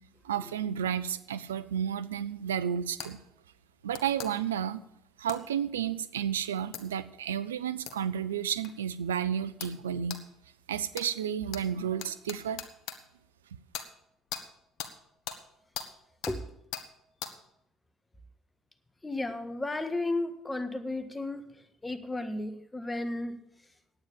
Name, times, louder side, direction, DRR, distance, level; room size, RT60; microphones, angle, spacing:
voice 1, 0.2-3.2 3.8-4.8 5.2-10.2 10.7-12.6, right 9 dB, 90° right, 14 dB, 0.5 m, -32 dB
sound 1, 3.0-3.1 3.9-4.3 5.3-5.4 6.7-6.8 7.9-8.0 8.6-8.7 9.6-9.8 10.1-10.2 10.9-11.1 11.5-11.6 12.0-13.0 13.7-13.9 14.3-14.4 14.8-14.9 15.3-15.4 15.7-15.9 16.2-16.4 16.7-16.9 17.2-17.3, left 8 dB, 65° left, 1.3 m, -38 dB
voice 2, 19.0-21.5 21.8-23.4, left 2 dB, 15° left, 10 dB, 1.5 m, -33 dB
9.8 x 8.8 x 8.5 m, 0.78 s
hypercardioid pair, 60°, 0 cm